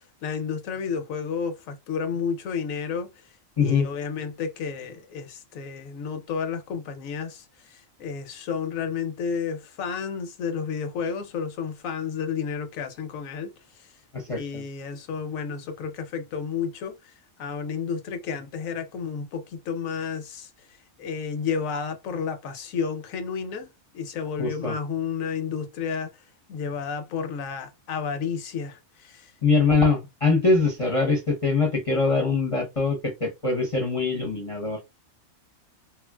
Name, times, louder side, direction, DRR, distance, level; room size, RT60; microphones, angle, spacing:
voice 1, 0.0-3.1 3.6-13.5 14.3-16.9 17.4-20.5 21.0-23.7 23.9-26.1 26.5-29.3, left 6 dB, 90° left, 1.1 m, -31 dB
voice 2, 14.1-14.6 24.4-24.8 29.4-34.8, left 4 dB, 30° left, 0.6 m, -23 dB
3.0 x 2.5 x 2.2 m
omnidirectional pair, 1.4 m